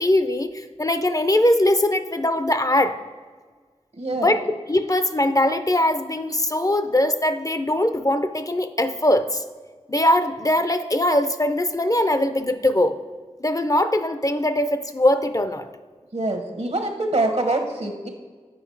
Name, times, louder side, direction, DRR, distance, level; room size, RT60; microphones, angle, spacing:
voice 1, 0.0-3.0 4.2-9.4 9.9-13.0 13.4-15.7, left 1 dB, 30° left, 10 dB, 0.5 m, -21 dB
voice 2, 3.9-4.4 16.1-18.1, right 2 dB, 65° right, 4 dB, 1.1 m, -25 dB
7.7 x 5.2 x 4.5 m, 1.5 s
wide cardioid pair, 45°, 12 cm